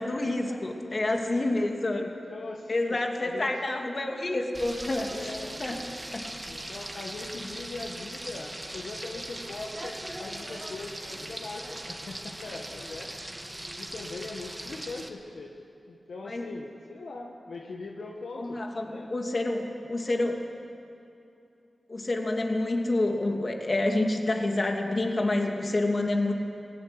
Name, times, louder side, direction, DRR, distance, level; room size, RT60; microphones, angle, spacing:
voice 1, 0.0-2.1 2.7-5.1 5.6-5.8 6.1-6.3 16.3-16.4 18.4-20.4 21.9-26.3, left 2 dB, 50° left, 2 dB, 2.9 m, -28 dB
voice 2, 1.2-1.6 2.0-3.5 5.1-5.5 5.9-6.1 6.4-13.1 13.8-15.5 15.9-19.1, left 3 dB, 85° left, 0 dB, 1.6 m, -41 dB
Frying (food), 4.5-15.1, right 1 dB, 25° right, 2.1 m, -40 dB
18.5 x 17.5 x 9.8 m, 2.7 s
cardioid pair, 40°, 0 cm